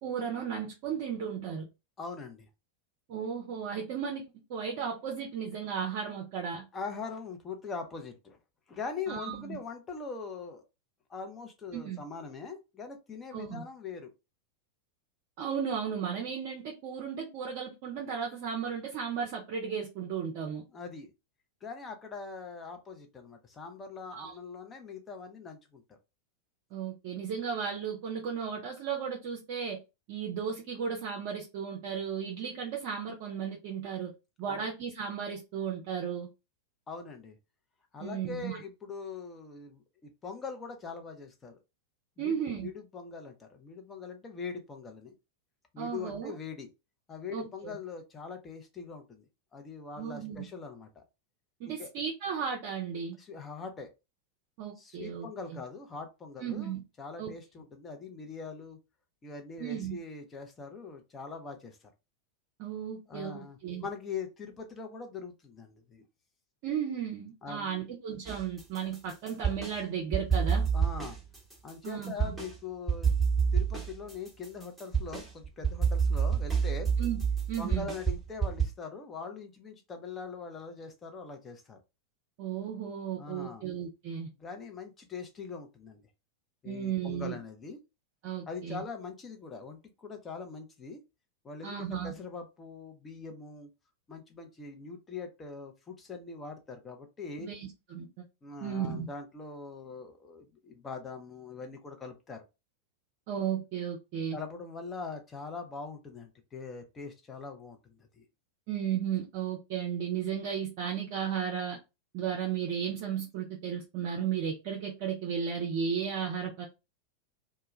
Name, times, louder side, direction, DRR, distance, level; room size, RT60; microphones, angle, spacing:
voice 1, 0.0-1.7 3.1-4.2 4.5-6.6 9.1-9.6 11.7-12.0 13.3-13.6 15.4-20.6 24.1-24.3 26.7-29.8 30.1-34.1 34.4-36.3 38.0-38.6 42.2-42.7 45.8-46.3 47.3-47.7 50.0-50.5 51.6-53.2 54.6-55.6 56.4-56.8 57.2-57.3 59.6-60.0 62.6-63.9 66.6-70.7 71.8-72.4 77.0-77.2 77.5-77.9 82.4-84.3 86.7-87.4 88.2-88.8 91.6-92.1 97.4-98.1 98.6-99.1 103.3-104.4 108.7-111.8 112.1-116.7, right 7 dB, 45° right, 0.6 m, -35 dB
voice 2, 2.0-2.5 6.7-8.4 8.7-10.6 11.1-14.1 20.7-21.1 21.6-26.0 34.5-34.6 36.9-37.4 37.9-41.6 42.2-45.1 45.7-46.7 47.1-49.2 49.5-51.0 51.7-51.9 53.2-53.9 54.8-58.8 59.2-61.8 63.1-66.0 67.4-67.9 70.7-71.2 71.6-73.1 73.5-76.9 77.6-81.8 83.2-83.7 84.4-86.0 86.6-87.8 88.5-91.0 91.4-93.7 94.1-97.5 98.4-102.4 104.3-108.3, left 5 dB, 20° left, 0.7 m, -42 dB
sound 1, 68.3-69.8 70.1-72.5 72.9-78.6, right 6 dB, 5° right, 1.0 m, -28 dB
2.2 x 2.2 x 3.0 m
figure-of-eight pair, 90°, 0 cm